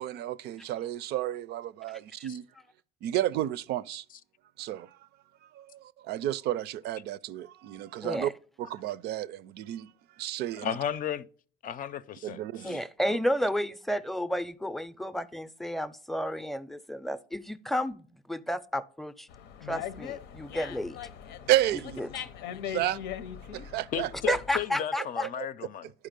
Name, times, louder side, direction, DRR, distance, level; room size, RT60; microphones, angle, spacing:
voice 1, 0.0-2.5 3.0-4.0 4.6-4.9 5.5-8.3 8.6-9.9 10.2-10.7 12.2-12.8 13.1-13.2 21.5-22.1 22.7-23.0 23.5-24.4 25.2-25.5, right 13 dB, 75° right, 0.4 m, -32 dB
voice 2, 8.0-8.3 12.6-19.3 19.6-21.0 22.0-22.3 24.3-25.3, equal, ahead, 0.5 m, -32 dB
voice 3, 10.6-11.3 11.6-12.8 23.9-25.9, left 10 dB, 55° left, 0.5 m, -34 dB
Dog, 19.3-24.6, left 9 dB, 90° left, 0.7 m, -40 dB
11.0 x 4.8 x 5.2 m
cardioid pair, 110°, 17 cm